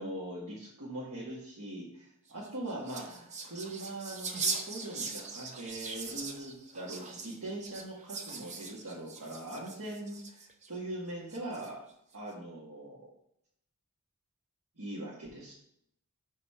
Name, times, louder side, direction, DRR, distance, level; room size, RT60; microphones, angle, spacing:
voice 1, 0.0-11.8 12.1-13.1 14.8-15.5, right 1 dB, 80° right, -6 dB, 1.5 m, -41 dB
sound 1, 2.3-10.7 11.3-11.9, right 4 dB, 30° right, 0.6 m, -40 dB
5.1 x 3.9 x 5.6 m, 0.75 s
head